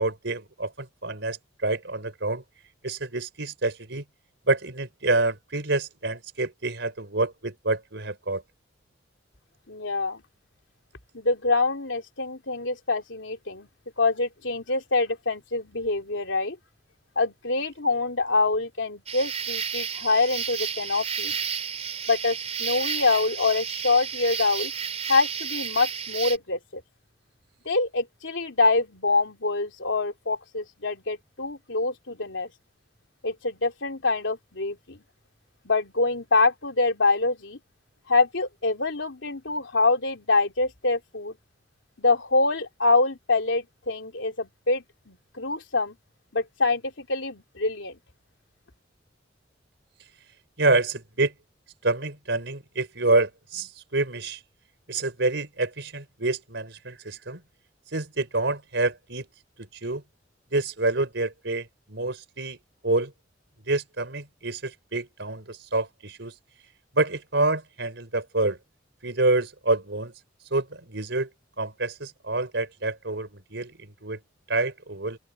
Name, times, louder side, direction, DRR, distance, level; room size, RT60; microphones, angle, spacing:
voice 1, 0.0-2.4 2.8-4.0 4.5-8.4 50.6-51.3 51.8-54.4 54.9-57.4 57.9-59.3 59.6-60.0 60.5-62.6 62.8-63.1 63.7-66.3 66.9-68.6 69.0-70.1 70.5-71.3 71.6-74.2 74.5-75.2, right 2 dB, 65° right, 5.2 m, -27 dB
voice 2, 9.7-10.2 11.1-13.7 14.0-16.6 17.1-21.4 22.1-24.7 25.1-26.8 27.6-32.5 33.2-35.0 35.6-37.6 38.1-41.4 42.0-45.9 46.3-47.9, left 3 dB, 80° left, 3.1 m, -25 dB
sound 1, 19.1-26.4, right 7 dB, 35° right, 4.1 m, -32 dB
open air
head